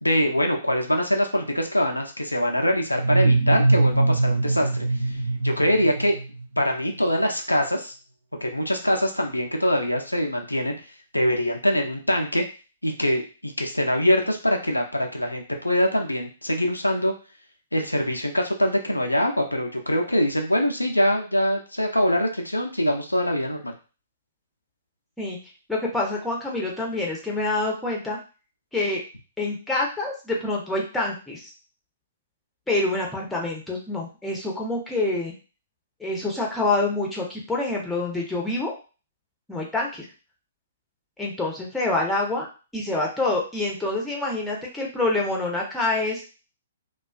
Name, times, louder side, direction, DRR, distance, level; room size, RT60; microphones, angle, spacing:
voice 1, 0.0-4.7 5.1-5.2 5.4-6.2 6.6-7.9 8.4-10.7 11.1-12.4 12.8-17.1 17.7-23.7, equal, 85° left, 3 dB, 0.4 m, -23 dB
sound 1, 2.9-6.6, right 2 dB, 65° right, 0.5 m, -22 dB
voice 2, 25.7-28.2 28.7-29.0 29.4-31.5 32.7-35.3 36.0-38.7 39.5-40.1 41.2-42.5 42.7-46.2, left 2 dB, 5° left, -2 dB, 0.6 m, -26 dB
2.4 x 2.3 x 2.3 m, 0.34 s
figure-of-eight pair, 120°, 0 cm